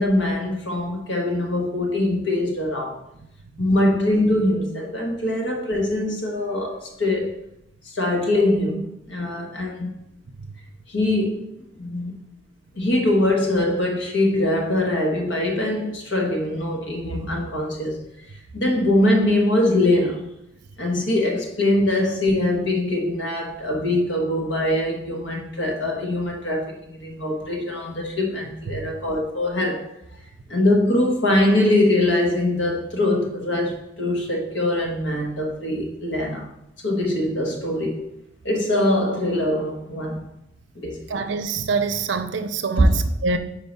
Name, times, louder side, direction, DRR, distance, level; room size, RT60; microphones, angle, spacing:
voice 1, 0.0-3.0 3.6-7.3 7.8-9.9 10.9-12.2 12.7-18.0 18.5-20.3 20.8-29.9 30.5-36.5 36.8-38.1 38.4-40.2 40.7-41.2 42.8-42.9, left 1 dB, 70° left, 1.3 m, -22 dB
voice 2, 41.1-43.4, right 4 dB, 65° right, 0.5 m, -25 dB
4.6 x 4.6 x 5.3 m
head